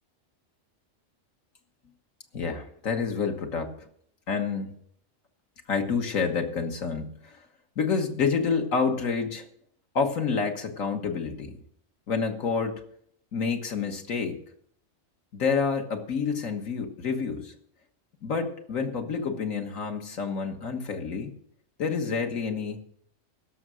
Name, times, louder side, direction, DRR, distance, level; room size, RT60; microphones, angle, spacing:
voice 1, 2.3-3.8 4.3-4.7 5.7-7.4 7.8-9.5 9.9-11.5 12.1-12.8 13.3-14.4 15.3-17.5 18.2-21.4 21.8-22.8, left 5 dB, 80° left, 4 dB, 1.8 m, -28 dB
16.5 x 6.7 x 6.2 m, 0.67 s
omnidirectional pair, 1.4 m